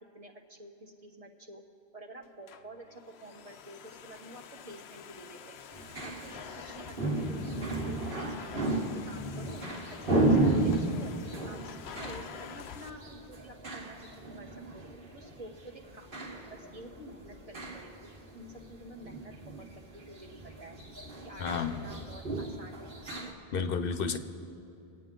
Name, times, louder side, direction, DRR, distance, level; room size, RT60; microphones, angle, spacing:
voice 1, 0.1-1.6 1.9-5.6 6.0-9.6 10.0-10.1 10.4-14.8 15.1-19.3 19.7-20.3 20.6-20.8 21.2-23.1, right 1 dB, 35° right, 1 dB, 1.3 m, -49 dB
Domestic sounds home sounds, 2.2-12.9, left 8 dB, 90° left, 0.9 m, -47 dB
sound 1, 5.7-23.3, right 2 dB, 60° right, 1.7 m, -34 dB
voice 2, 21.4-21.8 23.5-24.2, left 6 dB, 65° left, 10 dB, 0.9 m, -31 dB
24.5 x 9.1 x 3.8 m, 2.8 s
omnidirectional pair, 1.0 m